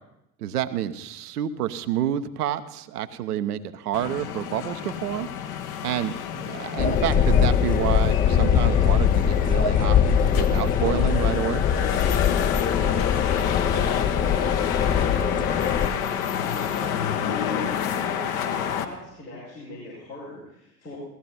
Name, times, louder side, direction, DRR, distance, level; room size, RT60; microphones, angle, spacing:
voice 1, 0.4-5.3 5.8-10.0 10.3-11.7, right 11 dB, 70° right, 10 dB, 0.8 m, -29 dB
sound 1, 3.9-18.8, left 9 dB, 60° left, 1.1 m, -29 dB
sound 2, 6.8-15.9, left 8 dB, 20° left, 0.5 m, -22 dB
voice 2, 12.4-21.0, left 1 dB, 90° left, -10 dB, 5.2 m, -40 dB
16.0 x 14.0 x 4.2 m, 0.83 s
figure-of-eight pair, 65°, 47 cm